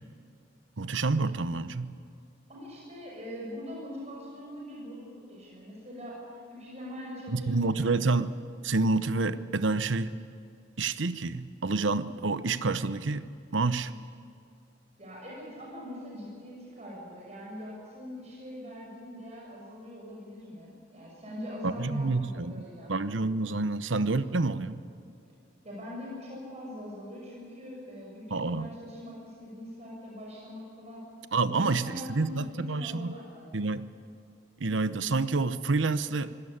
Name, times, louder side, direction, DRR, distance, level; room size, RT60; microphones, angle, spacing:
voice 1, 0.8-1.9 7.3-8.3 8.6-10.1 10.8-13.9 21.6-22.6 22.9-24.8 28.3-28.7 31.3-33.1 33.5-33.9 34.6-36.3, right 3 dB, 90° right, 13 dB, 0.9 m, -28 dB
voice 2, 2.5-6.2 6.5-8.2 15.0-23.0 25.6-31.1 31.4-33.5, left 1 dB, 35° right, -4 dB, 6.2 m, -42 dB
23.5 x 18.0 x 8.8 m, 2.5 s
head